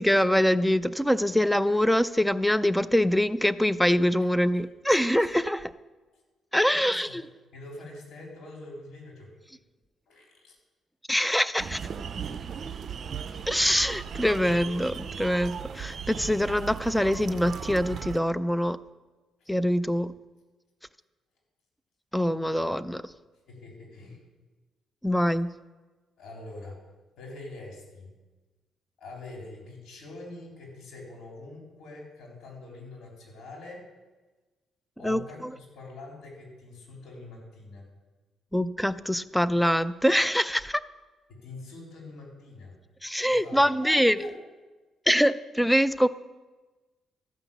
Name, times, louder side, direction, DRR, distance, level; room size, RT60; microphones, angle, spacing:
voice 1, 0.0-5.7 6.5-7.1 11.1-11.8 13.5-18.8 19.5-20.1 22.1-23.0 25.0-25.5 35.0-35.2 38.5-40.8 43.0-44.2 45.1-46.1, equal, 5° left, 16 dB, 0.4 m, -24 dB
voice 2, 6.7-7.2 7.5-9.3 10.1-10.6 23.5-24.2 26.2-26.8 27.2-28.1 29.0-33.8 35.0-37.9 41.3-42.7 43.3-44.3, left 2 dB, 75° left, -1 dB, 3.8 m, -44 dB
sound 1, 11.6-18.2, right 7 dB, 50° right, 0.6 m, -37 dB
13.5 x 5.8 x 7.1 m, 1.2 s
cardioid pair, 90°, 0 cm